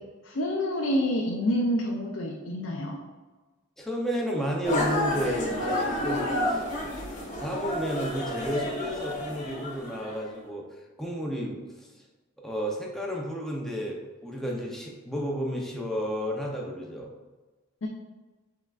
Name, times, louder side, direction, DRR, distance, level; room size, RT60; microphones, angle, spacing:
voice 1, 0.2-3.0 17.8-17.9, equal, 65° left, -1 dB, 0.5 m, -27 dB
voice 2, 3.8-10.6 11.0-11.9 12.4-17.1, equal, ahead, -2 dB, 0.6 m, -32 dB
sound 1, 4.6-10.2, left 1 dB, 35° left, 1.0 m, -30 dB
5.4 x 3.6 x 2.4 m, 1.3 s
head